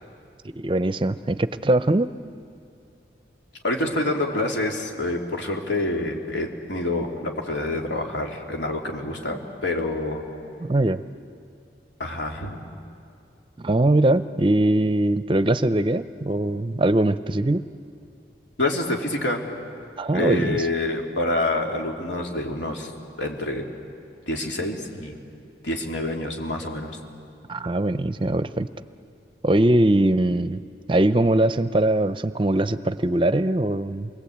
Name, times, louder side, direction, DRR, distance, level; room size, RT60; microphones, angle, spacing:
voice 1, 0.6-2.1 10.6-11.0 13.6-17.6 20.0-20.7 27.5-28.7 29.4-30.6 30.9-34.1, right 1 dB, 30° right, 13 dB, 0.5 m, -21 dB
voice 2, 3.6-10.2 12.0-12.6 18.6-19.4 20.1-22.9 23.2-23.6 24.3-25.2 25.6-27.0, left 2 dB, 90° left, 1 dB, 3.2 m, -27 dB
28.5 x 21.5 x 8.6 m, 2.4 s
head